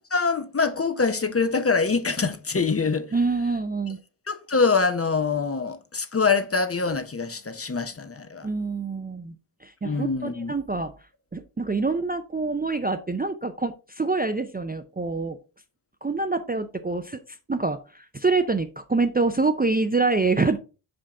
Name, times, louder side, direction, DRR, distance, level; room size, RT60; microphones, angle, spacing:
voice 1, 0.1-3.1 4.3-8.5 9.8-10.5, left 4 dB, 30° left, 0.6 m, -24 dB
voice 2, 3.1-4.0 8.4-9.3 9.6-10.9 11.3-15.4 16.0-17.2 17.5-20.6, right 3 dB, 20° right, 0.4 m, -26 dB
5.6 x 5.2 x 3.5 m
wide cardioid pair, 95°, 50 cm